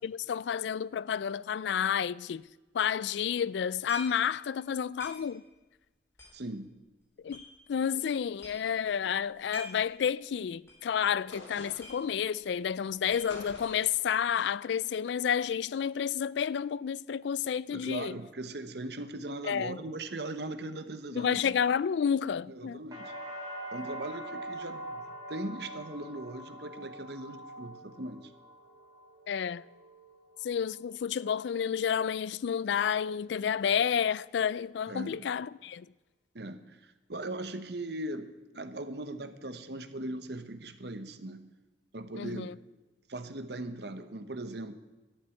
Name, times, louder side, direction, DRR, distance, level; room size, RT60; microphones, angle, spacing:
voice 1, 0.0-2.4 2.7-5.4 7.2-7.4 7.7-18.2 19.5-19.8 21.1-22.8 29.3-29.6 30.4-35.9 42.2-42.5, left 8 dB, 65° left, 0.3 m, -30 dB
sound 1, 2.7-2.8 3.9-4.3 4.6-4.7 5.0-5.5 6.1-7.5 8.0-8.1 8.3-8.8 9.3-9.9 10.2-10.3 10.7-10.9 11.2-11.3 11.5-12.4 12.7-13.7, left 1 dB, 15° left, 4.0 m, -46 dB
voice 2, 6.3-6.7 17.7-21.6 22.5-23.1 23.7-28.3 34.9-35.2 36.3-41.4 41.9-42.5 43.1-44.8, right 2 dB, 60° right, 1.0 m, -39 dB
sound 2, 11.3-12.1 13.3-14.0, left 2 dB, 90° left, 4.1 m, -47 dB
sound 3, 22.9-30.8 31.2-31.8, right 1 dB, 20° right, 3.2 m, -44 dB
12.5 x 7.5 x 9.8 m
head